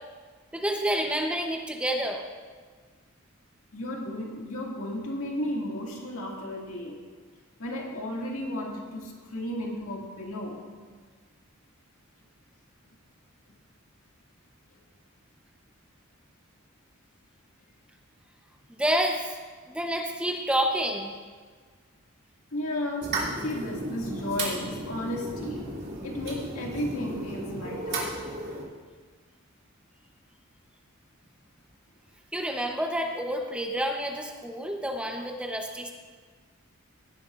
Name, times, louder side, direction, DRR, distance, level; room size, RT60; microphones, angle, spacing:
voice 1, 0.5-2.2 18.8-19.3 19.7-21.2 32.3-35.9, equal, 5° right, 2 dB, 0.7 m, -28 dB
voice 2, 3.7-7.0 7.6-10.7 22.5-23.2 23.4-25.7 26.0-28.1, left 1 dB, 80° left, -1 dB, 2.1 m, -34 dB
sound 1, 23.0-28.6, right 2 dB, 50° right, 2.5 m, -34 dB
17.0 x 10.5 x 2.5 m, 1.5 s
head